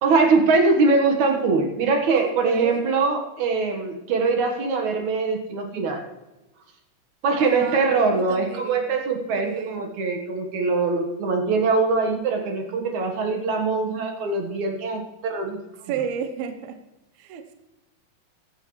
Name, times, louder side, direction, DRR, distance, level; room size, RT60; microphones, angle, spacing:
voice 1, 0.0-6.0 7.2-15.6, right 4 dB, 60° right, 4 dB, 2.5 m, -22 dB
voice 2, 2.1-2.8 7.4-7.8 8.1-8.9 9.4-9.9 15.9-16.8 17.2-17.5, right 7 dB, 75° right, 7 dB, 2.8 m, -32 dB
16.0 x 12.5 x 3.2 m, 1.0 s
omnidirectional pair, 4.4 m